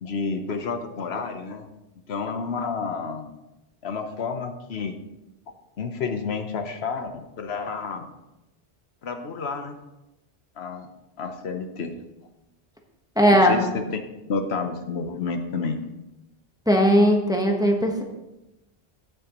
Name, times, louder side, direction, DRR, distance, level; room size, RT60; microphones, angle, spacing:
voice 1, 0.0-1.7 2.1-3.3 3.8-4.9 5.8-8.1 9.0-9.8 10.6-10.9 11.2-12.0 13.3-14.0 14.3-15.8, left 4 dB, 85° left, 6 dB, 1.2 m, -30 dB
voice 2, 13.2-13.5 16.7-18.0, equal, 5° right, 1 dB, 1.2 m, -18 dB
12.0 x 9.2 x 3.0 m, 0.96 s
omnidirectional pair, 1.0 m